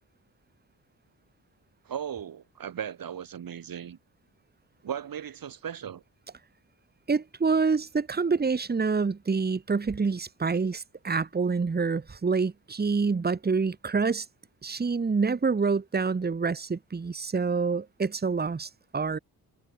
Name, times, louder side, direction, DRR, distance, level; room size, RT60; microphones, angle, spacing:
voice 1, 1.9-4.0 4.8-6.0, right 9 dB, 65° right, 5.3 m, -37 dB
voice 2, 7.1-14.3 14.6-19.2, right 4 dB, 25° right, 2.0 m, -27 dB
wide cardioid pair, 135°, 37 cm